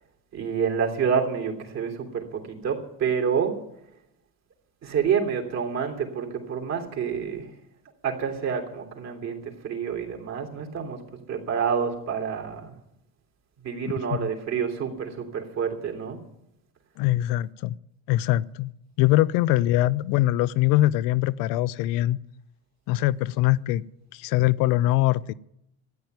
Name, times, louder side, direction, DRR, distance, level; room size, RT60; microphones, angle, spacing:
voice 1, 0.3-3.6 4.8-7.5 8.0-11.0 11.3-12.7 13.6-16.2, right 7 dB, 50° right, 3.4 m, -28 dB
voice 2, 17.0-17.8 18.1-18.7 19.0-22.2 22.9-23.8 24.1-25.3, left 16 dB, 70° left, 0.7 m, -22 dB
13.5 x 9.4 x 9.4 m
supercardioid pair, 100°, 35 cm